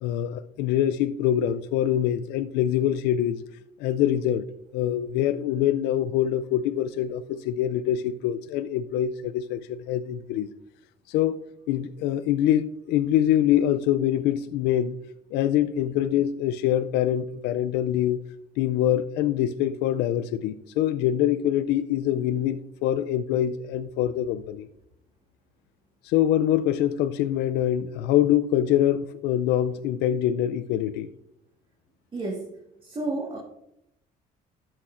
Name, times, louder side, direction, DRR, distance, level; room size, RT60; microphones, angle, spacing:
voice 1, 0.0-3.4 3.8-4.5 4.7-10.5 11.1-11.4 11.7-15.0 15.3-18.3 18.6-24.7 26.0-31.1, left 11 dB, 90° left, 0.4 m, -24 dB
voice 2, 32.1-32.5 32.8-33.4, right 2 dB, 30° right, 1.6 m, -31 dB
13.0 x 5.9 x 2.5 m
cardioid pair, 110°, 17 cm